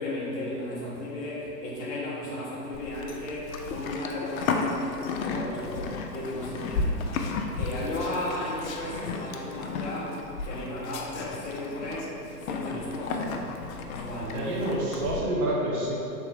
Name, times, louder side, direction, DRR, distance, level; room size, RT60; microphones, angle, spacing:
voice 1, 0.0-7.1 7.5-13.6 13.9-14.5, left 1 dB, 15° left, -7 dB, 0.7 m, -35 dB
Livestock farm animals working animals, 2.7-15.2, left 4 dB, 60° left, 0.5 m, -34 dB
voice 2, 14.3-15.9, right 1 dB, 35° right, -4 dB, 0.6 m, -28 dB
3.7 x 3.5 x 3.2 m, 2.9 s
hypercardioid pair, 125°, 48 cm